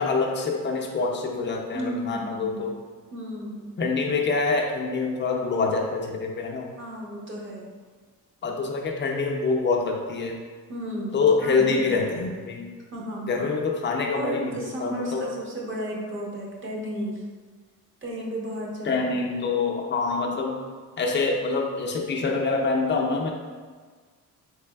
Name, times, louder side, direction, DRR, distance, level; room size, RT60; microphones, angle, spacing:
voice 1, 0.0-2.7 3.8-6.7 8.4-10.4 11.1-12.7 13.3-14.6 14.8-15.3 18.9-20.6 21.0-23.3, left 4 dB, 35° left, 1 dB, 0.4 m, -25 dB
voice 2, 1.7-2.6 3.1-3.7 6.8-7.7 10.7-12.1 12.9-13.3 14.1-17.2 18.0-19.0, equal, 40° right, -3 dB, 0.8 m, -33 dB
3.6 x 3.3 x 2.3 m, 1.5 s
cardioid pair, 130°, 33 cm